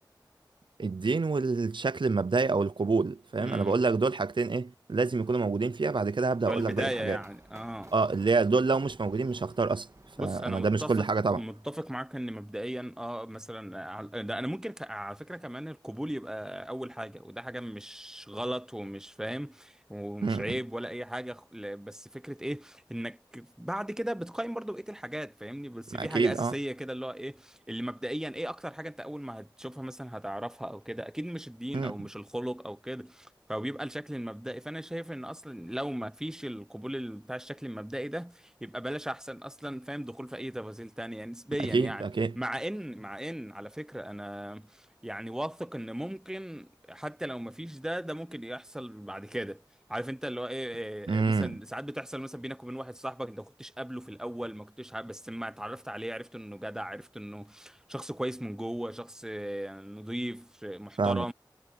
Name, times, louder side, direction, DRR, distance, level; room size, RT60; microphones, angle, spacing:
voice 1, 0.8-7.2 7.9-9.9 10.2-11.4 20.2-20.5 25.9-26.5 31.7-32.1 41.7-42.3 51.1-51.6 61.0-61.3, right 4 dB, 80° right, 0.6 m, -27 dB
voice 2, 3.4-3.8 6.5-7.9 10.2-11.1 11.4-42.0 42.3-49.6 49.9-61.3, equal, 5° right, 1.0 m, -37 dB
Run, 5.1-10.7, right 2 dB, 40° right, 1.9 m, -55 dB
wide cardioid pair, 55°, 8 cm